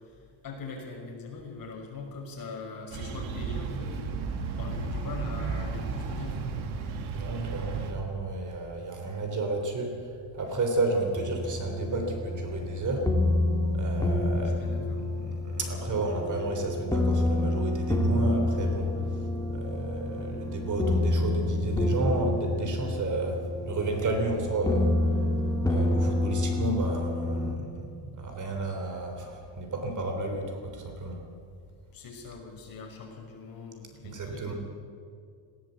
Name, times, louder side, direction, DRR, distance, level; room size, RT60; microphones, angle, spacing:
voice 1, 0.1-4.0 4.5-6.5 14.3-15.0 31.9-34.6, left 4 dB, 45° left, 0 dB, 5.7 m, -42 dB
sound 1, 2.9-7.9, right 4 dB, 85° right, 2.5 m, -33 dB
voice 2, 7.1-10.1 10.3-13.1 13.7-18.9 19.5-24.9 25.7-31.2 34.0-34.5, right 2 dB, 40° right, 4 dB, 3.6 m, -32 dB
sound 2, 11.1-27.6, left 1 dB, 5° left, 2.0 m, -28 dB
19.5 x 17.0 x 8.1 m, 2.3 s
cardioid pair, 140°, 47 cm